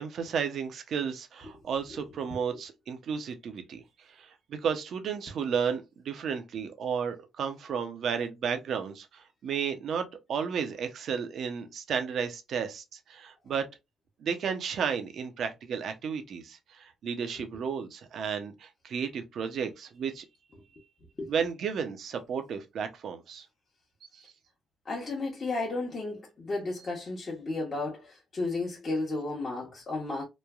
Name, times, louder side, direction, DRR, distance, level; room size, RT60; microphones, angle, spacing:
voice 1, 0.0-3.8 4.1-13.7 14.2-20.2 21.3-23.5 24.1-24.3, right 6 dB, 65° right, 0.6 m, -33 dB
voice 2, 24.9-30.2, left 2 dB, 40° left, 0.9 m, -33 dB
3.0 x 2.2 x 2.3 m
cardioid pair, 90°, 0 cm